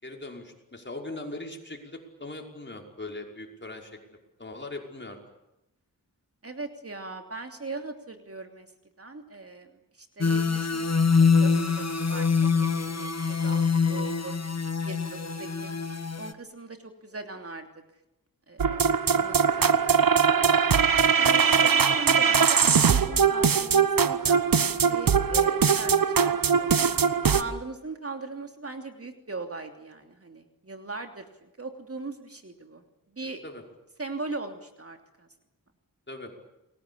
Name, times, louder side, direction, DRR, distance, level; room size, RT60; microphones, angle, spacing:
voice 1, 0.0-5.2 33.4-33.6 36.1-36.3, left 2 dB, 35° left, 2 dB, 5.5 m, -40 dB
voice 2, 6.4-8.7 9.0-11.1 11.4-11.6 12.1-14.4 14.8-15.7 16.2-17.7 18.5-20.7 21.2-24.5 24.9-26.9 27.3-32.8 33.1-33.4 34.0-35.3, right 3 dB, 40° right, 5 dB, 3.1 m, -40 dB
sound 1, 10.2-16.3, left 5 dB, 50° left, 1.5 m, -24 dB
sound 2, 18.6-27.4, right 6 dB, 75° right, 1.3 m, -21 dB
29.5 x 21.5 x 8.7 m, 0.90 s
wide cardioid pair, 85°, 34 cm